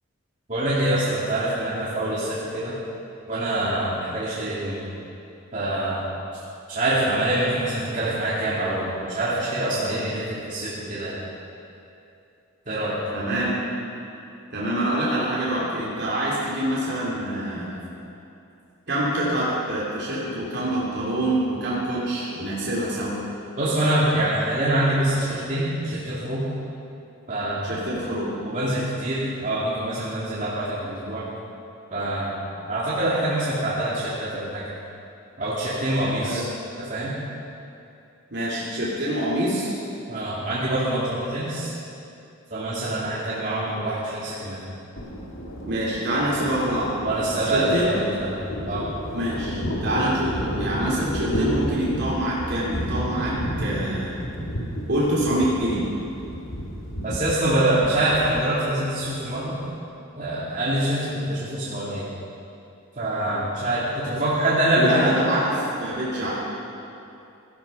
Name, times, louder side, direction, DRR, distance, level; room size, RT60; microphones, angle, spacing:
voice 1, 0.5-2.8 3.3-4.8 5.5-6.1 6.7-11.2 12.7-12.9 23.6-26.4 27.3-27.7 28.4-31.2 31.9-32.4 32.7-34.7 35.4-36.5 36.8-37.2 40.1-41.7 42.5-44.6 46.2-46.3 47.0-48.9 57.0-59.6 60.2-62.1 63.0-65.4, right 1 dB, 35° right, -9 dB, 2.8 m, -25 dB
voice 2, 13.1-13.5 14.5-17.8 18.9-23.2 27.6-28.3 36.2-36.4 38.3-39.8 45.6-46.9 47.4-47.9 49.1-54.2 54.9-55.8 64.7-65.5 65.8-66.3, right 1 dB, 50° right, -7 dB, 3.2 m, -26 dB
Thunder, 45.0-59.8, equal, 65° left, 2.4 m, -31 dB
16.0 x 14.0 x 5.6 m, 2.7 s
head